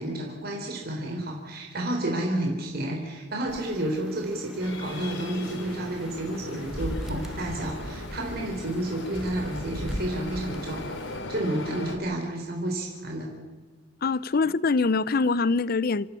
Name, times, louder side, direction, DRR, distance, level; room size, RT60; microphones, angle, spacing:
voice 1, 0.0-11.0 11.3-13.3, right 1 dB, 55° right, 3.8 m, -31 dB
sound 1, 3.5-11.2, equal, 5° right, 1.3 m, -39 dB
sound 2, 4.6-12.0, left 1 dB, 75° left, 3.5 m, -38 dB
voice 2, 14.0-16.1, left 4 dB, 55° left, 0.6 m, -24 dB
27.0 x 14.5 x 8.5 m
head